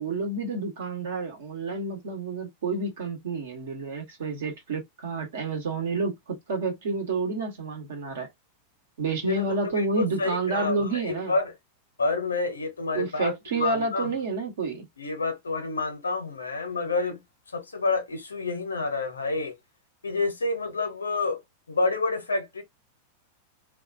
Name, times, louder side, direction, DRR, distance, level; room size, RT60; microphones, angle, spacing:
voice 1, 0.0-8.3 9.0-11.3 12.9-14.9, right 3 dB, 60° right, 1.0 m, -29 dB
voice 2, 9.2-11.5 12.0-14.1 15.0-17.2 17.5-19.6 20.0-21.4 21.7-22.6, left 3 dB, 75° left, 0.7 m, -28 dB
2.4 x 2.3 x 2.4 m
figure-of-eight pair, 90°, 0 cm